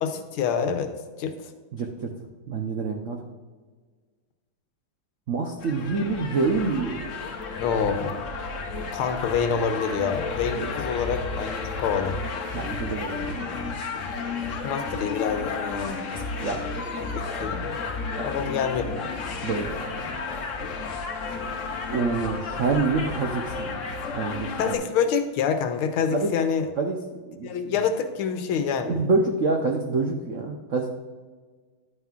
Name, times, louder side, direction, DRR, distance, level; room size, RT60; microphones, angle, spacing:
voice 1, 0.0-0.9 1.2-1.5 7.6-8.2 8.9-12.2 14.6-16.1 17.1-17.8 18.2-19.1 24.6-26.7 27.4-29.0, left 6 dB, 80° left, 8 dB, 1.6 m, -27 dB
voice 2, 1.7-2.1 2.5-3.2 5.3-7.1 10.6-10.7 12.5-13.7 16.4-17.0 18.2-18.3 19.4-20.1 21.9-23.8 24.1-24.7 26.1-26.3 26.8-27.0 27.3-27.7 28.9-30.9, right 3 dB, 90° right, 3 dB, 0.6 m, -27 dB
sound 1, 5.6-24.7, left 4 dB, 50° left, 1.0 m, -32 dB
11.0 x 9.3 x 2.4 m, 1.5 s
omnidirectional pair, 2.4 m